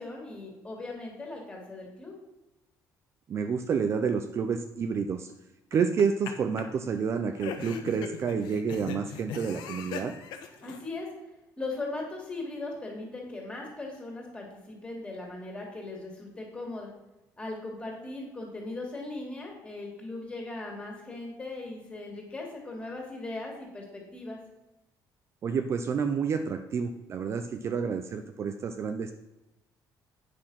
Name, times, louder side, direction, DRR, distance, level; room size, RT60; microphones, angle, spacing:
voice 1, 0.0-2.1 10.6-11.1 11.6-16.9 17.4-24.4, left 2 dB, 15° left, -1 dB, 2.6 m, -38 dB
voice 2, 3.3-5.3 5.7-10.1 25.4-29.1, right 6 dB, 35° right, 8 dB, 0.6 m, -29 dB
sound 1, 5.7-6.3 6.6-6.7 7.4-10.8, left 7 dB, 85° left, 1.2 m, -39 dB
9.1 x 6.3 x 5.7 m, 0.98 s
cardioid pair, 160°, 8 cm